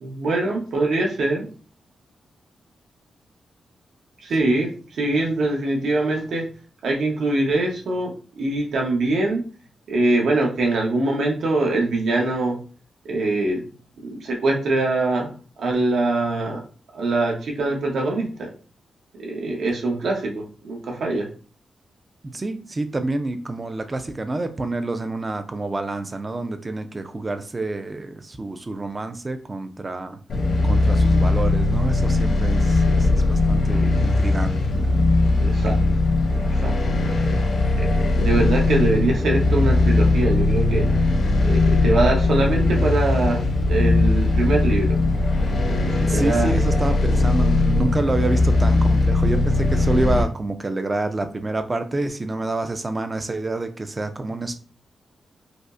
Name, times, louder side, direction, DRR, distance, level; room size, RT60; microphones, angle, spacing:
voice 1, 0.0-1.5 4.2-6.5 6.8-9.4 9.9-12.6 13.1-13.6 14.0-15.3 15.6-16.6 16.9-18.5 19.2-21.3 35.4-35.8 36.3-36.7 38.0-40.9 41.4-45.0 45.7-46.5, right 2 dB, 80° right, -1 dB, 0.9 m, -23 dB
voice 2, 22.2-30.2 30.6-34.6 37.2-37.3 46.1-54.5, right 2 dB, 25° right, 8 dB, 0.4 m, -28 dB
sound 1, 30.3-50.2, left 2 dB, 70° left, 1.1 m, -19 dB
4.9 x 2.0 x 2.5 m, 0.40 s
wide cardioid pair, 145°, 0 cm